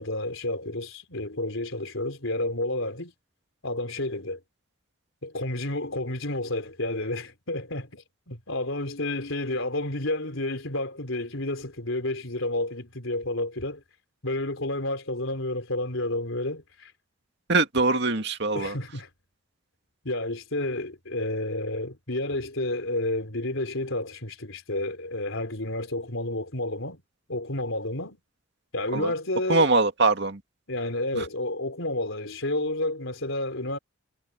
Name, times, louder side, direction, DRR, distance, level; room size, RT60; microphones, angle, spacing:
voice 1, 0.0-3.1 3.6-4.4 5.2-13.8 14.2-16.9 17.9-18.0 18.5-19.1 20.0-27.0 27.3-28.2 28.7-29.7 30.7-33.8, left 1 dB, 70° left, 3.9 m, -30 dB
voice 2, 17.5-18.8 28.9-29.1 29.5-30.4 31.1-31.3, right 3 dB, 55° right, 2.3 m, -23 dB
head